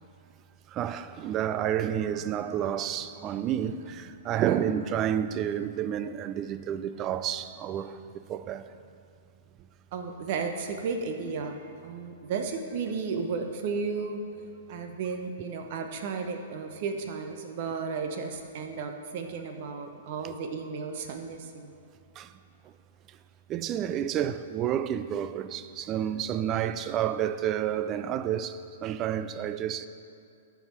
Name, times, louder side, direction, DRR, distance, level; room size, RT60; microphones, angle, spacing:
voice 1, 0.7-8.0 8.3-8.7 20.2-20.3 22.2-22.3 23.5-29.9, right 10 dB, 30° right, 0.4 m, -30 dB
voice 2, 4.3-4.6 9.9-14.4 14.7-21.7, right 5 dB, 55° right, 1.0 m, -34 dB
13.5 x 4.8 x 4.5 m
hypercardioid pair, 120°, 0 cm